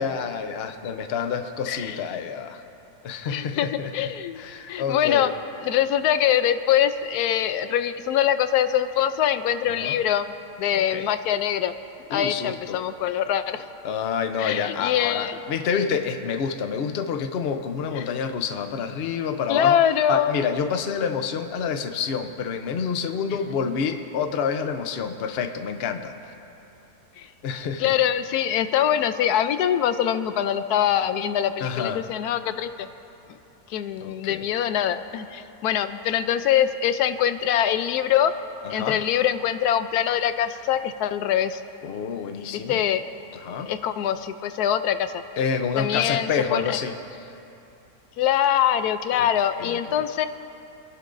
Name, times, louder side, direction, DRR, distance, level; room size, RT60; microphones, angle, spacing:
voice 1, 0.0-2.6 3.0-4.1 4.4-5.3 9.8-10.0 10.7-11.1 12.1-12.8 13.8-19.8 20.1-26.1 27.4-27.9 31.6-32.0 34.0-34.4 38.6-39.0 41.8-42.8 43.3-43.7 45.4-47.0 49.1-49.3 49.6-50.0, left 6 dB, 55° left, 7 dB, 0.8 m, -28 dB
voice 2, 1.7-2.0 3.3-4.4 4.7-5.3 5.6-11.7 12.1-13.6 14.4-15.4 17.9-18.1 19.3-20.4 27.2-27.3 27.8-32.9 33.7-38.3 38.7-41.6 42.5-43.0 43.6-45.2 45.8-46.8 48.2-50.3, left 10 dB, 90° left, 11 dB, 1.1 m, -23 dB
29.0 x 11.5 x 2.6 m, 2.8 s
omnidirectional pair, 1.6 m